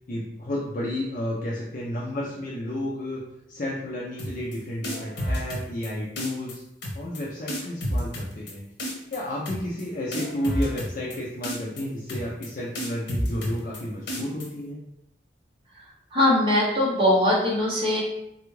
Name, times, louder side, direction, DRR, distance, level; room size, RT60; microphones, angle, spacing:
voice 1, 0.1-3.2 3.5-6.6 6.9-8.6 9.1-14.8, left 1 dB, 45° left, -5 dB, 0.5 m, -31 dB
sound 1, 4.2-4.6 4.8-5.9 6.2-6.5 6.8-7.2 7.5-8.5 8.8-9.2 9.5-9.8 10.1-11.2 11.4-11.8 12.1-12.5 12.8-13.8 14.1-14.5, equal, 90° left, 0.8 m, -30 dB
voice 2, 16.1-18.0, left 1 dB, 30° right, -5 dB, 0.9 m, -21 dB
3.3 x 2.3 x 3.1 m, 0.82 s
head